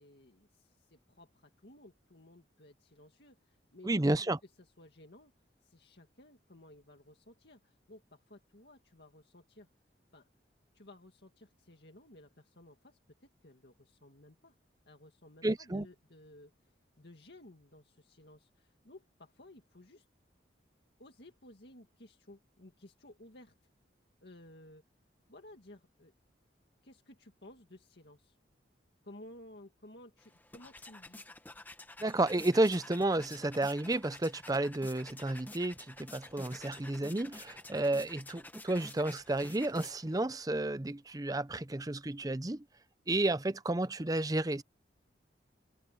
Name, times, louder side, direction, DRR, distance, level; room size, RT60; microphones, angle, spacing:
voice 1, 0.0-5.3 5.6-9.7 10.1-10.3 10.7-14.5 14.9-20.1 21.0-23.5 24.2-24.8 25.3-26.1 26.8-28.4 29.0-31.2, left 1 dB, 60° left, 2.2 m, -56 dB
voice 2, 3.8-4.4 15.4-15.9 32.0-42.6 43.1-44.6, right 2 dB, 20° right, 0.6 m, -31 dB
sound 1, 30.2-40.3, left 2 dB, 10° left, 1.2 m, -50 dB
head